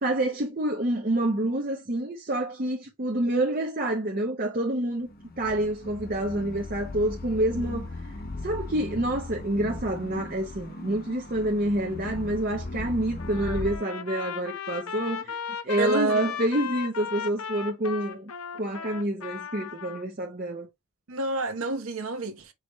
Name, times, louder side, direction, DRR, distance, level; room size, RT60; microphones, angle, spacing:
voice 1, 0.0-5.1 5.4-7.9 8.4-15.4 15.6-20.7, right 1 dB, 40° right, 0.7 m, -28 dB
sound 1, 5.0-13.8, left 2 dB, 45° left, 0.8 m, -37 dB
Trumpet, 13.2-20.0, left 7 dB, 75° left, 0.7 m, -36 dB
voice 2, 13.3-13.7 15.8-16.3 21.1-22.5, right 2 dB, 70° right, 0.9 m, -30 dB
4.8 x 3.3 x 3.0 m
head